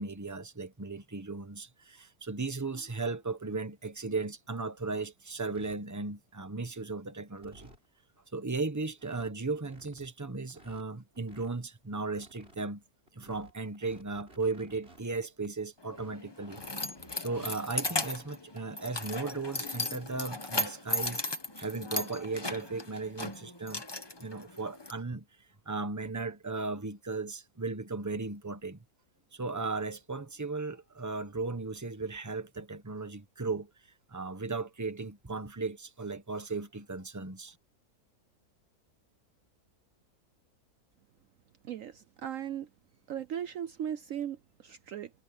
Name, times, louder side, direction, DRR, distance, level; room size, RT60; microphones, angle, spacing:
voice 1, 0.0-7.7 8.3-12.8 13.1-16.6 17.2-21.2 21.6-23.8 24.2-25.3 25.6-28.8 29.3-33.7 34.1-37.6, right 3 dB, 10° right, 1.2 m, -36 dB
sound 1, 4.1-4.2 4.6-4.9 5.5-5.8 6.4-6.8 7.1-7.2 7.4-7.9 8.4-8.5 8.7-8.8 9.0-9.3 9.6-10.1 10.5-11.5 11.9-12.6 13.1-15.5 15.9-17.5 17.8-18.0 19.4-19.5 19.9-20.0 21.2-21.4, right 1 dB, 40° right, 7.1 m, -56 dB
Keys jangling, 15.8-24.9, left 2 dB, 20° left, 1.0 m, -36 dB
voice 2, 41.6-42.7 43.1-45.1, right 9 dB, 65° right, 1.0 m, -37 dB
omnidirectional pair, 1.6 m